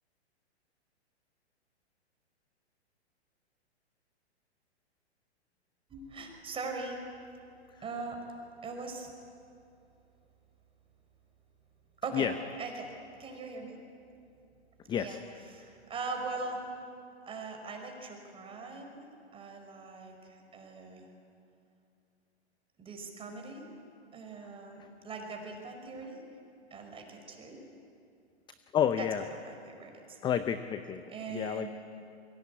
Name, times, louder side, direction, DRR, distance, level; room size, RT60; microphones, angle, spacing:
voice 1, 5.9-7.0 7.8-8.2 8.6-9.1 12.0-12.3 12.6-12.9 13.2-13.8 15.0-15.2 15.5-16.7 17.2-19.1 19.3-21.1 22.8-23.7 24.1-26.2 26.7-27.6 29.0-30.2 31.1-31.7, right 4 dB, 15° right, 3 dB, 5.2 m, -41 dB
voice 2, 14.9-15.2 28.7-29.2 30.2-31.0 31.3-31.7, left 9 dB, 15° left, 10 dB, 0.7 m, -30 dB
28.5 x 23.0 x 8.5 m, 2.5 s
hypercardioid pair, 125°, 34 cm